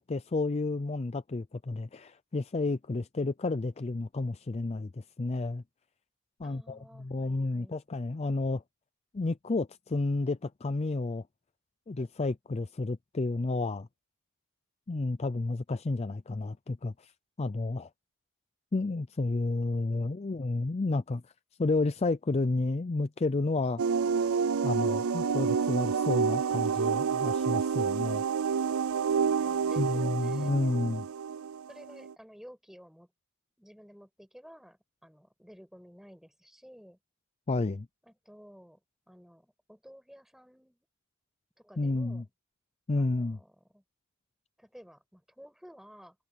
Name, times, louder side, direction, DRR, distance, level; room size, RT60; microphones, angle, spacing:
voice 1, 0.0-5.6 6.4-8.6 9.1-11.2 11.9-13.9 14.9-17.1 17.4-17.9 18.7-21.2 21.6-23.8 24.1-24.3 24.6-28.2 29.8-31.1 37.5-37.9 41.8-42.2 42.9-43.4, left 3 dB, 30° left, 0.5 m, -31 dB
voice 2, 6.4-7.8 29.2-30.5 31.7-33.1 33.6-37.0 38.0-38.8 39.1-40.8 41.6-42.3 43.0-43.8 44.6-46.2, equal, ahead, 7.8 m, -53 dB
sound 1, 23.8-32.1, right 6 dB, 70° right, 0.4 m, -28 dB
head